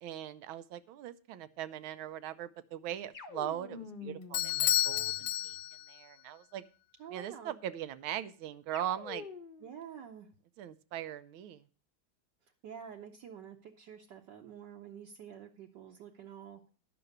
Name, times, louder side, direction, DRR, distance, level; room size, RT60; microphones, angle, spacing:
voice 1, 0.0-4.5 4.8-5.6 5.9-6.6 7.1-9.3 10.6-11.6, right 11 dB, 85° right, 14 dB, 1.5 m, -40 dB
sound 1, 3.1-5.6 8.7-9.8, left 4 dB, 35° left, 0.8 m, -47 dB
Bell / Doorbell, 4.3-6.0, left 13 dB, 70° left, 1.3 m, -31 dB
voice 2, 7.0-7.5 9.6-10.3 12.6-16.7, right 8 dB, 65° right, 1 dB, 1.4 m, -48 dB
10.5 x 6.1 x 6.5 m, 0.39 s
omnidirectional pair, 2.2 m